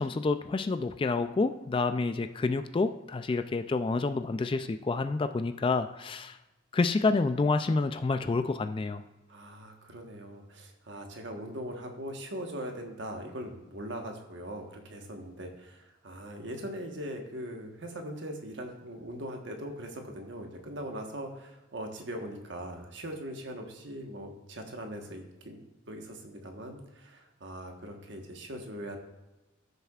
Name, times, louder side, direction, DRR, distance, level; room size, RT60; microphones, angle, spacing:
voice 1, 0.0-6.4 6.7-9.0, left 3 dB, 25° left, 10 dB, 0.3 m, -28 dB
voice 2, 9.3-25.6 25.9-29.0, equal, 60° right, 3 dB, 1.3 m, -41 dB
14.5 x 6.7 x 2.4 m, 1.1 s
head